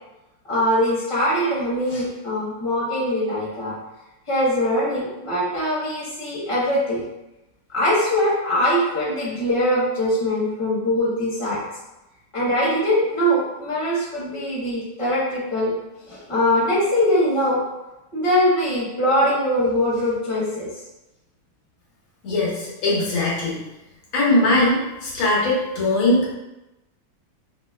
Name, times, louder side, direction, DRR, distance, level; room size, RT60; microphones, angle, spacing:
voice 1, 0.5-3.7 4.3-7.0 7.7-11.6 12.3-15.7 16.1-17.6 18.1-20.7, equal, 20° left, -8 dB, 0.9 m, -22 dB
voice 2, 22.2-23.6 24.1-26.3, left 2 dB, 90° left, -6 dB, 1.9 m, -20 dB
5.9 x 2.1 x 2.3 m, 0.98 s
omnidirectional pair, 2.2 m